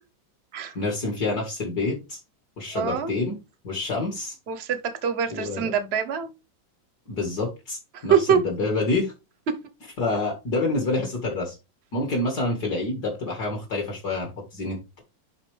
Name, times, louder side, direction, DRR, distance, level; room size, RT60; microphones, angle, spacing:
voice 1, 0.7-2.2 2.6-3.4 3.6-4.4 5.3-5.7 7.1-9.1 10.0-11.6 11.9-15.0, left 2 dB, 55° left, 2.5 m, -27 dB
voice 2, 2.7-3.1 4.5-6.3 7.9-8.4, right 8 dB, 40° right, 1.0 m, -24 dB
11.5 x 4.0 x 3.4 m
omnidirectional pair, 2.1 m